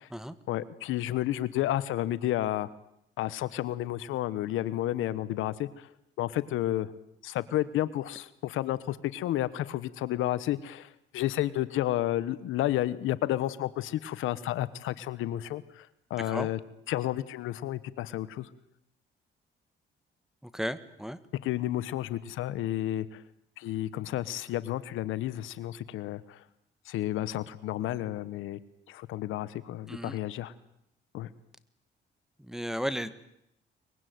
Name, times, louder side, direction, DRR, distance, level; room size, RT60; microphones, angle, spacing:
voice 1, 0.5-2.7 3.2-5.9 6.2-6.9 7.2-16.6 16.9-18.5 21.3-23.2 23.6-26.4 26.9-28.6 28.9-30.5 31.1-31.3, left 14 dB, 90° left, 16 dB, 1.2 m, -31 dB
voice 2, 16.2-16.5 20.4-21.2 29.9-30.2 32.4-33.1, equal, ahead, 14 dB, 1.7 m, -34 dB
23.5 x 21.5 x 9.4 m, 0.79 s
cardioid pair, 90°, 20 cm